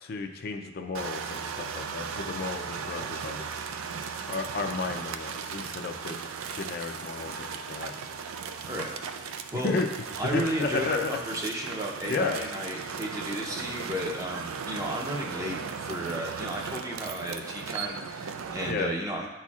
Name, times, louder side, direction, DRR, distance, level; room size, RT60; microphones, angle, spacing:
voice 1, 0.0-3.5 4.3-6.2 6.5-7.3 7.7-7.9 9.5-9.9 10.3-11.2 12.1-12.4 18.7-18.9, left 3 dB, 45° left, 4 dB, 0.4 m, -32 dB
sound 1, 0.9-18.7, right 6 dB, 85° right, 0.4 m, -37 dB
voice 2, 9.2-9.7 10.2-19.3, equal, 15° right, 0 dB, 0.6 m, -33 dB
10.0 x 4.3 x 2.4 m, 1.1 s
head